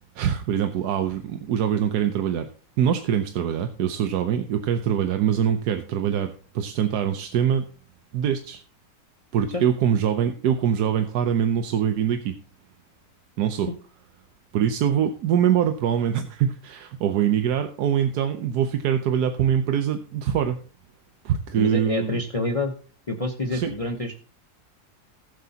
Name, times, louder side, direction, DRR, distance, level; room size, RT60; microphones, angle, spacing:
voice 1, 0.2-2.5 2.8-7.6 8.1-8.6 9.3-12.3 13.4-13.7 14.5-20.6 21.2-22.2 23.5-23.7, right 9 dB, 90° right, 7 dB, 1.3 m, -23 dB
voice 2, 21.5-22.7 23.1-24.2, left 2 dB, 25° left, 4 dB, 0.9 m, -27 dB
18.5 x 7.6 x 2.8 m, 0.40 s
omnidirectional pair, 1.6 m